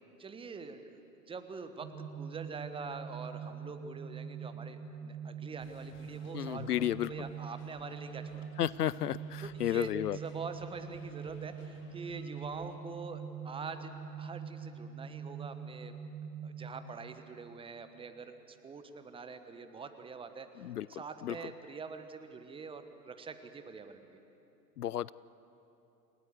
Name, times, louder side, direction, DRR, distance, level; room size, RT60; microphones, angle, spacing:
voice 1, 0.2-0.9 1.3-8.5 9.4-15.9 16.4-20.5 20.9-24.1, right 5 dB, 10° right, 9 dB, 1.2 m, -45 dB
sound 1, 1.8-16.8, right 6 dB, 50° right, 2.6 m, -44 dB
sound 2, 5.6-12.8, left 6 dB, 25° left, 1.7 m, -62 dB
voice 2, 6.3-7.1 8.6-10.2 20.6-20.9 21.2-21.4 24.8-25.1, left 12 dB, 65° left, 21 dB, 0.6 m, -32 dB
29.0 x 17.5 x 8.2 m, 2.9 s
figure-of-eight pair, 105°, 50 cm